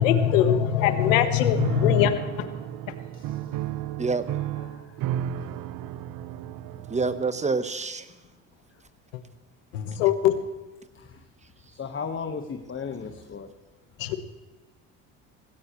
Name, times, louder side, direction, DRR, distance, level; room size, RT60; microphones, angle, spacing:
voice 1, 0.0-2.1 9.7-10.3 14.0-14.2, left 9 dB, 90° left, 10 dB, 1.3 m, -21 dB
voice 2, 1.4-2.3 2.6-2.7 3.1-3.7 4.2-5.0 5.4-5.7 8.1-8.2 10.9-11.2 11.7-13.5, left 5 dB, 30° left, 4 dB, 1.5 m, -38 dB
Piano, 1.6-7.5, right 12 dB, 60° right, 0.9 m, -33 dB
voice 3, 6.9-8.0, right 4 dB, 20° right, 12 dB, 1.1 m, -26 dB
17.5 x 16.5 x 3.2 m, 1.2 s
supercardioid pair, 75°, 38 cm